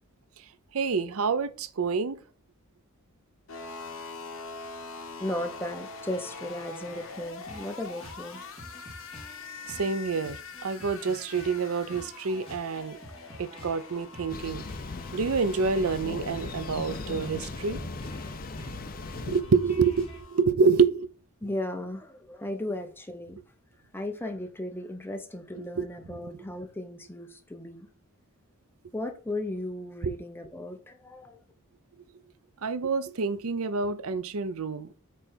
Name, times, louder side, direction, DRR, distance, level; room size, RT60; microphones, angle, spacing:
voice 1, 0.7-2.2 9.7-13.0 13.4-14.6 15.1-17.8 19.2-21.1 25.6-26.4 30.0-30.1 32.6-35.0, right 5 dB, 75° right, 0.5 m, -27 dB
sound 1, 3.5-20.4, left 4 dB, 65° left, 1.2 m, -45 dB
voice 2, 5.2-8.4 21.4-23.4 23.9-27.9 28.9-31.4, left 1 dB, 10° left, 0.8 m, -36 dB
sound 2, 6.0-20.2, equal, 25° left, 2.6 m, -46 dB
Thunder, 14.3-19.4, left 3 dB, 45° left, 0.6 m, -38 dB
8.4 x 3.4 x 4.3 m
head